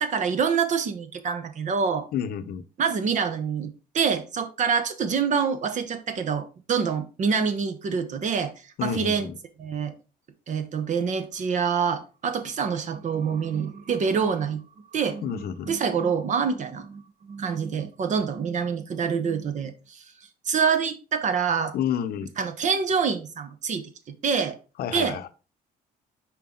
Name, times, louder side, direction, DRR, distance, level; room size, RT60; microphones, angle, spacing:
voice 1, 0.0-2.1 2.8-9.3 9.6-9.9 10.5-14.6 14.9-20.0 20.4-21.7 22.4-23.9 24.2-24.6 24.9-25.2, right 6 dB, 45° right, 0.9 m, -26 dB
voice 2, 2.1-2.6 8.8-9.4 15.2-15.7 21.7-22.3 24.8-25.3, left 8 dB, 65° left, 0.7 m, -29 dB
5.6 x 4.6 x 3.8 m
cardioid pair, 110°, 17 cm